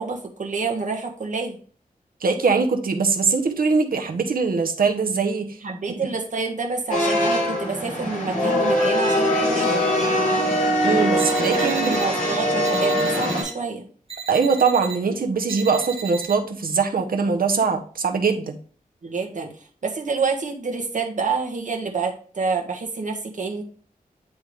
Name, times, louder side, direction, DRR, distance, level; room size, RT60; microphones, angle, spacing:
voice 1, 0.0-1.6 5.6-9.8 11.5-13.9 19.0-19.5 19.8-23.6, right 4 dB, 55° right, 2 dB, 1.5 m, -28 dB
voice 2, 2.2-5.6 10.8-12.0 14.3-18.6, right 5 dB, 80° right, 4 dB, 1.0 m, -22 dB
sound 1, 6.9-13.4, equal, 65° left, 3.5 m, -22 dB
sound 2, 11.2-12.1 12.6-13.5 14.1-15.0 15.5-16.3, right 7 dB, 40° right, 1.3 m, -35 dB
9.8 x 3.5 x 3.4 m, 0.43 s
wide cardioid pair, 115°, 15 cm